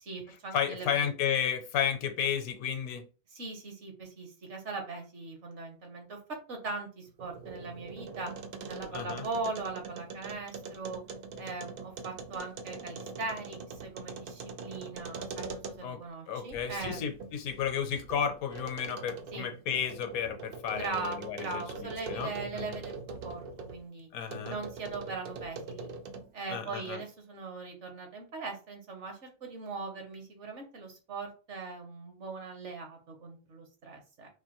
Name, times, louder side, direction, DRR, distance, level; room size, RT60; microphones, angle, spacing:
voice 1, 0.0-1.1 3.3-6.2 6.5-8.3 8.7-11.0 11.4-17.0 19.3-19.5 20.7-24.1 24.4-25.9 26.3-34.3, right 3 dB, 55° right, 3 dB, 1.2 m, -40 dB
voice 2, 0.5-3.0 8.9-9.3 15.8-22.8 24.1-24.6 26.5-27.0, left 8 dB, 75° left, 6 dB, 1.1 m, -33 dB
sound 1, 7.1-16.0 16.5-23.8 24.3-26.4, right 4 dB, 75° right, 0.5 m, -43 dB
4.2 x 2.5 x 2.9 m, 0.34 s
omnidirectional pair, 1.5 m